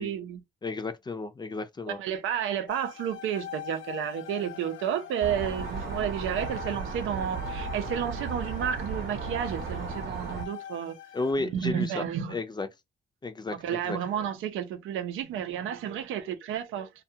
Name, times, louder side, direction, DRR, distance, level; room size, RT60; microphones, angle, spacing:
voice 1, 0.0-0.4 1.9-11.0 11.5-12.4 13.5-16.9, right 9 dB, 85° right, 0.6 m, -31 dB
voice 2, 0.6-2.0 11.1-12.0 12.3-12.7 13.2-13.6 13.8-14.0, left 3 dB, 20° left, 0.5 m, -32 dB
sound 1, 2.7-11.3, left 11 dB, 85° left, 0.5 m, -43 dB
sound 2, 5.2-10.4, right 6 dB, 55° right, 0.8 m, -35 dB
2.3 x 2.3 x 2.7 m
cardioid pair, 90°, 20 cm